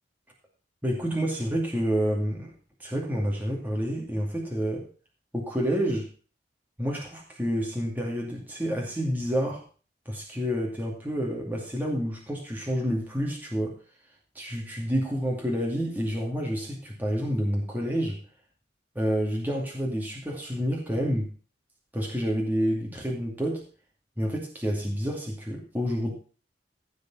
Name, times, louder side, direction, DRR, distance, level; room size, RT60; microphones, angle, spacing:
voice 1, 0.8-2.5 2.8-4.9 5.3-6.1 6.8-9.6 10.1-13.8 14.4-18.2 18.9-21.3 21.9-23.7 24.2-26.1, equal, 10° right, -2 dB, 2.5 m, -29 dB
15.5 x 5.3 x 5.6 m, 0.38 s
head